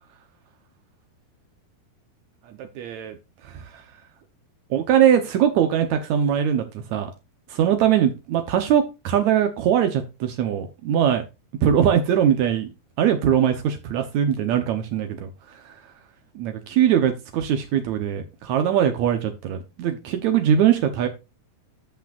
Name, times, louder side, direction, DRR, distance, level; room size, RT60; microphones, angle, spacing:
voice 1, 2.5-3.2 3.4-3.8 4.7-7.1 7.5-11.2 11.6-12.7 13.0-15.7 16.3-21.1, right 9 dB, 85° right, 1.6 m, -21 dB
14.0 x 6.0 x 2.5 m
omnidirectional pair, 4.7 m